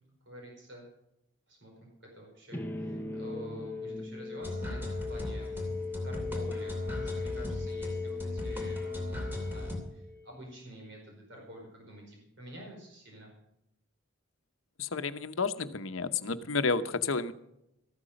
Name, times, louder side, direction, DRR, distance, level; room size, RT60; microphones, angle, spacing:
voice 1, 0.2-0.9 1.5-5.7 6.0-13.3, equal, 60° right, 0 dB, 4.9 m, -48 dB
sound 1, 2.5-10.4, left 4 dB, 10° left, 1.0 m, -39 dB
sound 2, 4.4-9.8, left 1 dB, 10° right, 2.7 m, -37 dB
voice 2, 14.8-17.3, left 4 dB, 80° left, 11 dB, 0.9 m, -31 dB
14.0 x 12.5 x 5.2 m, 0.82 s
head